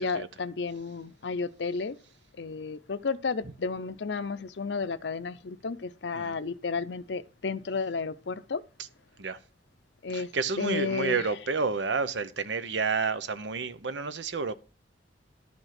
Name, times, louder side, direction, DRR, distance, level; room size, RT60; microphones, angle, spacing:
voice 1, 0.0-2.0 2.4-8.6 10.0-10.3 10.6-11.3, left 4 dB, 70° left, 0.6 m, -32 dB
voice 2, 10.1-14.5, right 4 dB, 80° right, 0.9 m, -30 dB
12.0 x 5.3 x 5.9 m
head